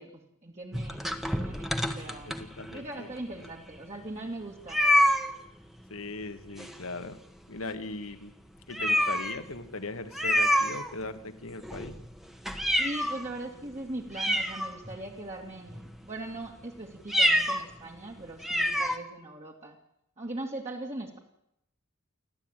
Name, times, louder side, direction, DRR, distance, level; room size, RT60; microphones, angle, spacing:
voice 1, 0.0-2.3 2.7-4.8 12.8-19.8 20.2-21.2, right 2 dB, 35° right, -1 dB, 2.5 m, -40 dB
sound 1, 0.7-2.8 3.4-3.5 3.8-3.9 4.7-5.3 6.6-7.1 7.4-7.6 8.1-8.2 8.7-9.4 10.1-11.2 11.6-13.3 13.7-13.8 14.1-15.1 15.7-16.0 17.0-17.7 18.0-18.1 18.4-19.0, equal, ahead, 1.4 m, -27 dB
voice 2, 2.3-3.1 5.9-7.2 7.5-8.3 8.7-12.0, left 2 dB, 75° left, 10 dB, 1.8 m, -39 dB
29.5 x 12.0 x 9.1 m, 0.79 s
head